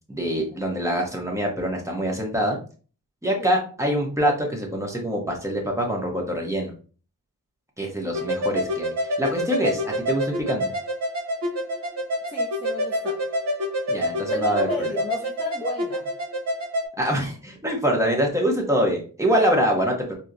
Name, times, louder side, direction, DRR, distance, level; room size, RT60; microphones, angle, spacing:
voice 1, 0.1-2.6 3.2-6.7 7.8-10.7 13.9-14.9 17.0-20.1, equal, 10° right, -1 dB, 0.9 m, -24 dB
sound 1, 8.1-16.9, equal, 55° right, 1.0 m, -27 dB
voice 2, 12.3-13.2 14.3-16.1, left 2 dB, 15° left, -1 dB, 0.5 m, -33 dB
4.3 x 2.1 x 2.5 m, 0.39 s
wide cardioid pair, 90°, 34 cm